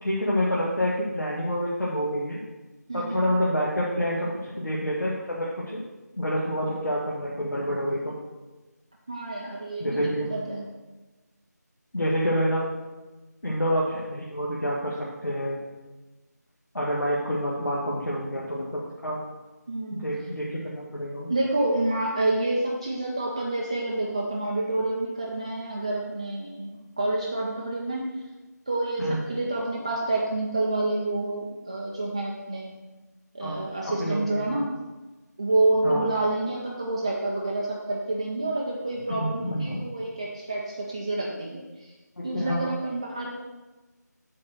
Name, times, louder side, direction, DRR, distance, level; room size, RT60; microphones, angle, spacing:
voice 1, 0.0-2.4 2.9-5.8 6.2-8.1 9.8-10.3 11.9-12.7 13.4-15.6 16.7-19.2 19.9-21.3 29.0-29.2 33.4-33.6 34.0-34.7 35.8-36.0 39.1-39.8 42.2-42.6, equal, 90° left, -6 dB, 1.7 m, -28 dB
voice 2, 2.9-3.3 9.1-10.6 19.7-20.0 21.3-26.7 27.0-28.1 28.7-32.7 33.3-34.6 35.4-41.9 42.2-43.3, right 2 dB, 20° right, -3 dB, 0.4 m, -28 dB
7.4 x 4.3 x 6.2 m, 1.2 s
figure-of-eight pair, 165°, 10 cm